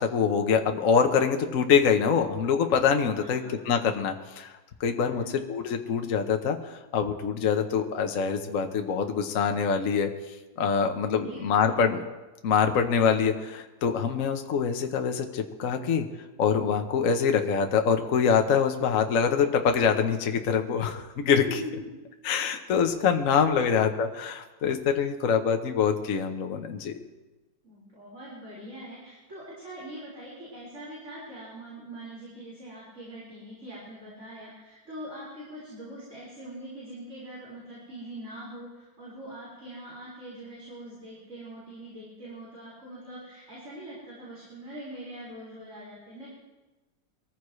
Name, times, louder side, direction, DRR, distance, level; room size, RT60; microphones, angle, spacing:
voice 1, 0.0-5.2 5.5-10.1 10.6-12.0 12.4-16.0 16.4-21.6 22.2-26.9, left 6 dB, 50° left, 5 dB, 1.2 m, -25 dB
voice 2, 3.2-3.5 5.0-5.4 11.2-11.8 21.4-21.9 23.5-23.7 27.6-46.3, right 1 dB, 40° right, -8 dB, 5.1 m, -43 dB
23.5 x 14.5 x 3.2 m, 1.1 s
omnidirectional pair, 2.0 m